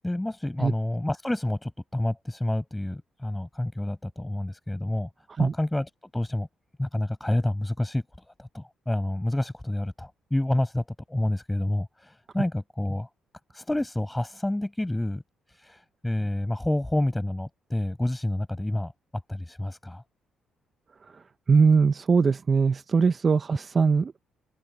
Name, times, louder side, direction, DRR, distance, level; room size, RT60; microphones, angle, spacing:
voice 1, 0.0-5.1 5.4-6.5 6.8-13.1 13.5-15.2 15.5-18.9 19.3-20.0, left 1 dB, 10° left, 6.8 m, -29 dB
voice 2, 21.5-24.1, right 5 dB, 40° right, 0.6 m, -21 dB
open air
cardioid pair, 90°, 0 cm